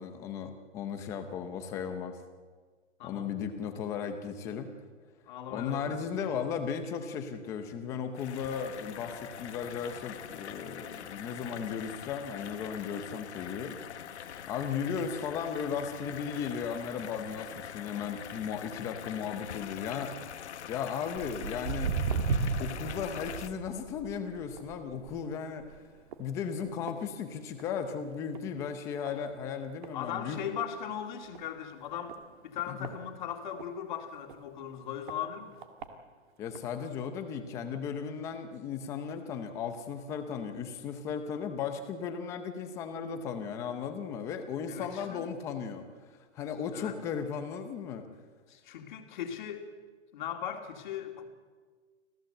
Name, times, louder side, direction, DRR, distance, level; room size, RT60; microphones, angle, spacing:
voice 1, 0.0-2.2 3.0-4.7 5.5-13.8 14.5-20.2 20.7-22.0 22.6-25.7 26.2-30.4 32.7-32.9 36.4-45.9 46.3-48.1, left 7 dB, 10° left, 8 dB, 0.6 m, -36 dB
voice 2, 3.0-3.3 5.3-6.1 29.9-32.2 32.4-35.6 44.7-45.3 46.7-47.0 48.5-49.7 50.1-51.3, left 9 dB, 40° left, 5 dB, 2.5 m, -38 dB
sound 1, 8.1-23.5, left 9 dB, 65° left, 1.5 m, -44 dB
Walk footsteps, 21.2-27.8 28.1-28.5 29.1-29.2 29.8-29.9 30.3-30.4 30.6-30.7 31.3-31.4 32.1-33.7 34.3-34.4 35.1-35.2 35.6-35.9 36.6-36.7, right 5 dB, 40° right, 2.0 m, -35 dB
26.5 x 16.0 x 7.9 m, 1.5 s
hypercardioid pair, 170°, 36 cm